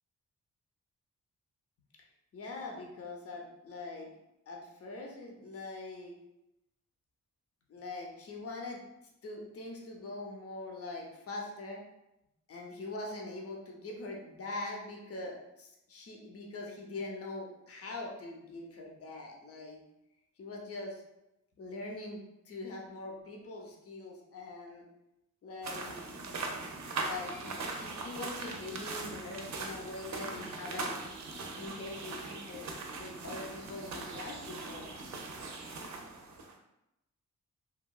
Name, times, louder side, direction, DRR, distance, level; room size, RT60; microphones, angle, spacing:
voice 1, 2.3-4.1 4.5-6.1 7.7-8.8 9.2-11.8 12.5-19.8 20.4-21.0 21.6-22.2 22.4-24.9 25.4-26.0 26.6-31.0 31.4-32.7 32.9-34.9, left 2 dB, 50° left, 0 dB, 0.6 m, -43 dB
sound 1, 25.6-36.5, right 3 dB, 65° right, 0.5 m, -40 dB
2.8 x 2.3 x 2.2 m, 0.87 s
cardioid pair, 70°, 31 cm